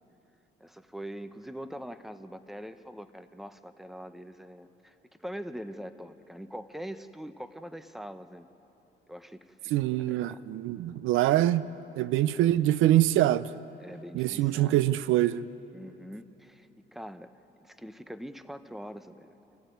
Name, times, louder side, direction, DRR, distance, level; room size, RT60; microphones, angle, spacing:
voice 1, 0.6-4.9 5.2-8.5 9.1-9.7 10.0-10.4 13.8-14.8 15.7-17.3 17.6-19.3, equal, ahead, 1.0 m, -43 dB
voice 2, 9.7-11.7 12.0-13.5 14.1-15.4, right 14 dB, 90° right, 0.5 m, -24 dB
26.0 x 15.0 x 9.3 m
cardioid pair, 90°, 20 cm